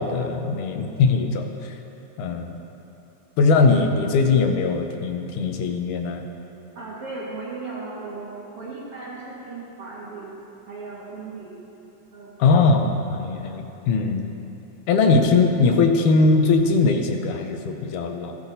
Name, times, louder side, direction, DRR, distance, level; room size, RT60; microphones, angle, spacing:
voice 1, 0.0-1.7 2.2-2.6 3.4-6.2 12.4-14.3 14.9-18.3, left 4 dB, 80° left, 5 dB, 2.1 m, -20 dB
voice 2, 6.8-8.3 8.6-10.4 10.7-11.6 12.1-12.3, right 3 dB, 50° right, -6 dB, 2.2 m, -36 dB
14.0 x 8.5 x 4.0 m, 2.9 s
omnidirectional pair, 3.7 m